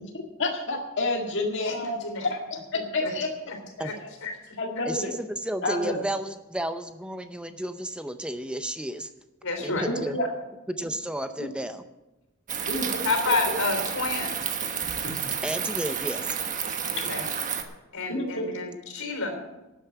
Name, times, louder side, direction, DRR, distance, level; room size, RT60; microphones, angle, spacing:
voice 1, 0.1-1.7 2.3-2.4 2.7-3.3 3.9-4.0 4.6-5.1 5.6-6.0 9.7-9.8 10.1-10.3 11.4-11.5 12.7-13.1 15.0-15.1 17.0-17.1 18.1-18.6, left 2 dB, 60° left, 0 dB, 1.8 m, -29 dB
voice 2, 1.6-2.3 3.0-3.1 3.8-3.9 4.2-4.3 9.4-9.8 13.0-14.4 17.1-17.2 17.9-19.4, left 3 dB, 85° left, 4 dB, 4.0 m, -29 dB
voice 3, 4.8-9.1 9.6-10.2 10.7-11.8 15.4-16.4, right 1 dB, 5° right, 9 dB, 0.6 m, -32 dB
sound 1, 12.5-17.6, right 7 dB, 40° right, 1.2 m, -30 dB
12.5 x 8.2 x 8.0 m, 1.0 s
head